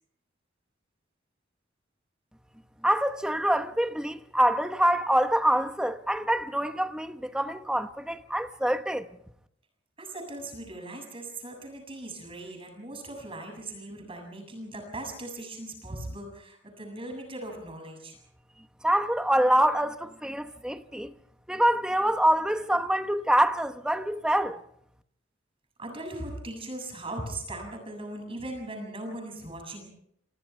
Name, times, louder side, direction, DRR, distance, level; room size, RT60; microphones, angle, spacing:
voice 1, 2.8-9.1 18.8-21.1 21.5-24.6, right 1 dB, 5° right, 1.1 m, -25 dB
voice 2, 10.0-18.2 25.8-29.9, right 1 dB, 30° right, 7.0 m, -39 dB
28.0 x 28.0 x 3.5 m
head